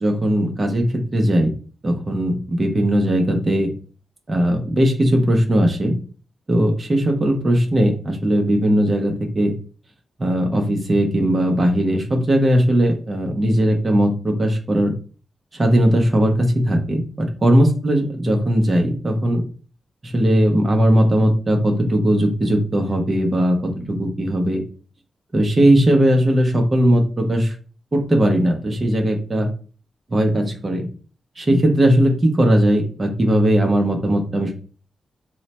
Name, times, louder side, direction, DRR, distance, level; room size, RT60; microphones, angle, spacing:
voice 1, 0.0-1.5 1.8-3.7 4.3-6.0 6.5-9.5 10.2-14.9 15.5-19.4 20.0-24.6 25.3-27.5 27.9-29.5 30.1-30.9 31.4-34.5, equal, 25° right, 2 dB, 0.6 m, -18 dB
3.0 x 2.1 x 4.1 m, 0.38 s
wide cardioid pair, 175°, 0 cm